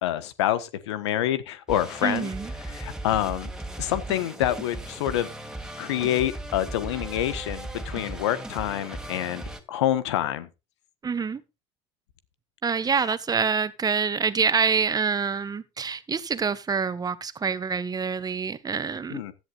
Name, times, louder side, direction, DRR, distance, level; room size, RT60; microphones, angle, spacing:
voice 1, 0.0-2.3 2.6-3.5 3.8-5.3 5.8-9.4 9.7-10.5 19.1-19.3, left 12 dB, 85° left, 1.3 m, -27 dB
sound 1, 1.7-9.6, right 1 dB, 5° right, 2.6 m, -37 dB
voice 2, 2.0-2.5 11.0-11.4 12.6-19.2, right 5 dB, 25° right, 1.5 m, -26 dB
15.5 x 11.0 x 2.5 m
hypercardioid pair, 80°, 14 cm